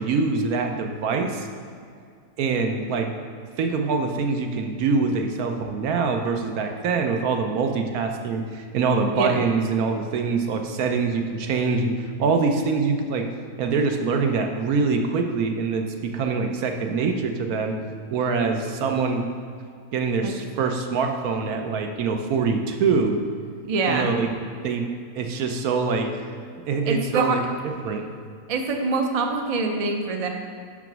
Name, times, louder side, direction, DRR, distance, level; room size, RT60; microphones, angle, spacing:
voice 1, 0.0-1.5 2.4-3.1 3.6-13.3 13.6-17.7 18.1-19.3 19.9-23.2 23.9-24.3 24.6-24.8 25.2-26.1 26.7-27.4 27.8-28.0, right 4 dB, 70° right, 4 dB, 1.2 m, -24 dB
voice 2, 23.7-24.1 26.9-27.4 28.5-30.3, right 3 dB, 45° right, 3 dB, 0.4 m, -24 dB
6.1 x 5.7 x 6.0 m, 2.2 s
omnidirectional pair, 1.6 m